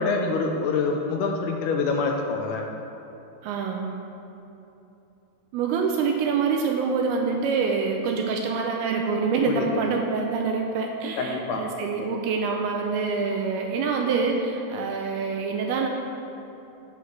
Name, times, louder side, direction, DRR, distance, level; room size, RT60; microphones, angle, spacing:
voice 1, 0.0-2.7 9.5-9.8 11.2-11.6, left 4 dB, 80° left, 2 dB, 2.5 m, -26 dB
voice 2, 3.4-4.0 5.5-15.9, right 5 dB, 80° right, 2 dB, 2.3 m, -26 dB
15.5 x 7.3 x 3.2 m, 2.8 s
omnidirectional pair, 5.0 m